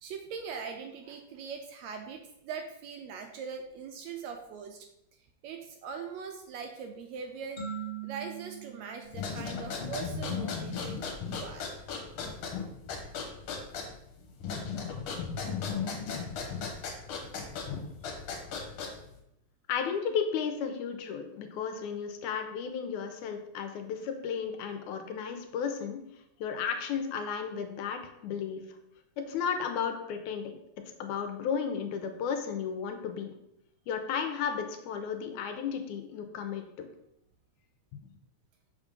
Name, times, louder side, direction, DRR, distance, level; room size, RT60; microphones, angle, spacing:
voice 1, 0.0-4.9 5.4-7.6 8.0-11.8, right 6 dB, 80° right, 4 dB, 1.7 m, -41 dB
sound 1, 7.6-10.2, right 7 dB, 25° left, 2.2 m, -42 dB
sound 2, 9.1-19.2, left 5 dB, 65° left, 2.0 m, -36 dB
voice 2, 19.7-26.1 26.4-28.7 29.2-33.4 33.9-36.9 38.0-38.1, left 7 dB, 85° left, 6 dB, 2.1 m, -34 dB
6.5 x 3.7 x 5.2 m, 0.80 s
omnidirectional pair, 3.5 m